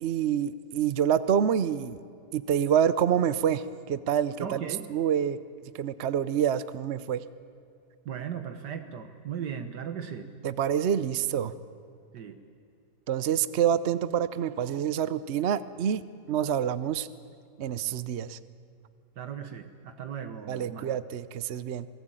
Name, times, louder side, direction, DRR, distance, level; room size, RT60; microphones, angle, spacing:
voice 1, 0.0-2.0 2.3-4.6 4.9-5.4 5.8-7.2 10.4-11.5 13.1-17.1 17.6-18.4 20.5-21.9, right 9 dB, 55° right, 15 dB, 0.8 m, -27 dB
voice 2, 4.4-4.8 8.1-10.3 12.1-12.4 19.2-20.9, right 8 dB, 75° right, 8 dB, 1.8 m, -37 dB
27.5 x 18.5 x 9.0 m, 2.5 s
omnidirectional pair, 1.8 m